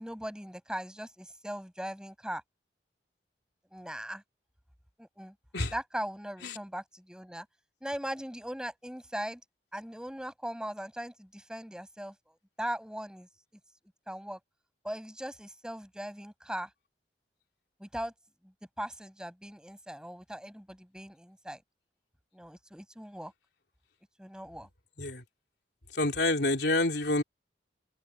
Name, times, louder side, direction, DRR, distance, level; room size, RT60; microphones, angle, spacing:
voice 1, 0.0-2.4 3.7-4.2 5.0-5.3 5.7-7.5 7.8-9.4 9.7-12.1 12.6-13.3 14.1-14.4 14.8-16.7 17.8-18.1 18.8-21.6 22.3-23.3 24.2-24.7, equal, 5° right, 6.6 m, -39 dB
voice 2, 25.9-27.2, left 2 dB, 70° left, 3.3 m, -28 dB
head